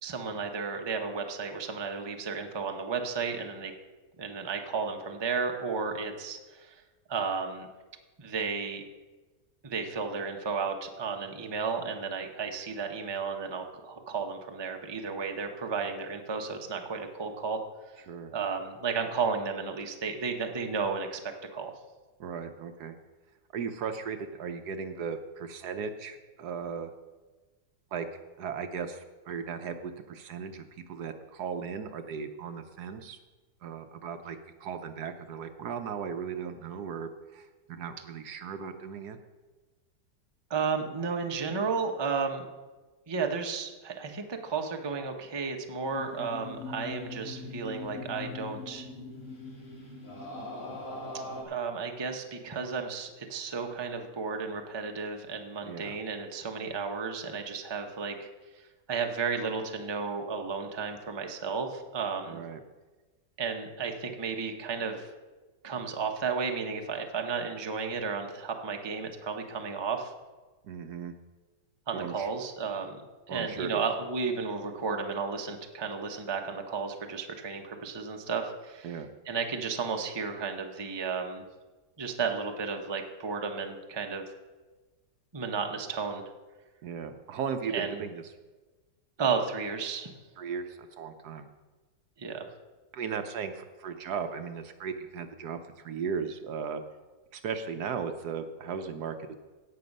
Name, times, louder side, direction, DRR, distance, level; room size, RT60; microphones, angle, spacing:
voice 1, 0.0-3.7 4.2-6.8 7.1-7.7 8.2-8.8 9.6-17.6 18.3-21.2 21.5-21.7 40.5-42.5 43.1-48.9 51.4-58.3 58.6-62.4 63.4-65.1 65.6-70.1 71.9-79.0 79.3-81.4 82.0-84.2 85.3-86.3 87.7-88.0 89.2-90.1 92.2-92.5, right 5 dB, 20° right, 4 dB, 0.7 m, -33 dB
voice 2, 22.2-22.9 23.5-26.9 27.9-28.1 28.4-33.2 33.6-39.2 55.7-56.0 62.3-62.6 70.6-71.1 71.9-72.3 73.3-73.8 78.8-79.1 86.8-88.2 90.4-91.5 92.9-96.8 97.3-99.4, right 6 dB, 70° right, 8 dB, 1.3 m, -37 dB
sound 1, 45.8-51.4, left 2 dB, 45° left, 2.5 m, -41 dB
17.0 x 6.1 x 5.4 m, 1.2 s
omnidirectional pair, 1.9 m